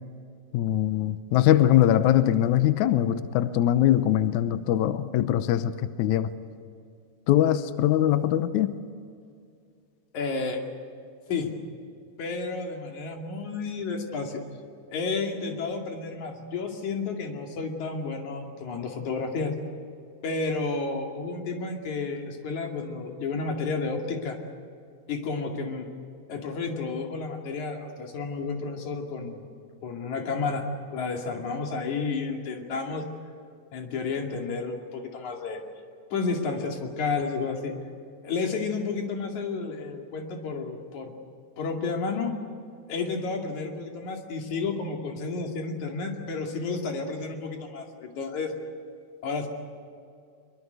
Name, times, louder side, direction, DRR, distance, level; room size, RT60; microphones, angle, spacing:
voice 1, 0.5-5.7 6.0-6.3 7.3-8.7, left 12 dB, 90° left, 11 dB, 1.7 m, -22 dB
voice 2, 10.1-10.6 11.3-11.5 12.2-14.4 14.9-19.5 20.2-24.4 25.1-25.9 26.3-29.5 29.8-33.0 33.7-35.6 36.1-37.7 38.2-41.1 41.6-42.3 42.9-48.5 49.2-49.5, left 4 dB, 50° left, 2 dB, 3.5 m, -31 dB
24.0 x 23.0 x 8.1 m, 2.3 s
omnidirectional pair, 4.6 m